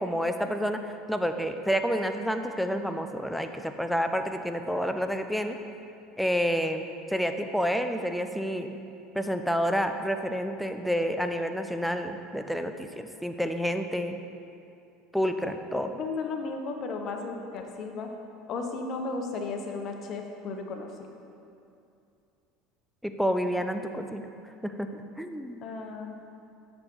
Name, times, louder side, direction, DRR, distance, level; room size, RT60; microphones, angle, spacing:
voice 1, 0.0-5.6 6.2-8.7 9.1-14.2 15.1-15.9 23.0-24.3 24.6-25.6, equal, ahead, 6 dB, 0.5 m, -29 dB
voice 2, 15.8-18.1 18.5-20.9 25.6-26.2, left 4 dB, 45° left, 3 dB, 0.8 m, -34 dB
6.9 x 5.2 x 4.5 m, 2.6 s
hypercardioid pair, 70°, 0 cm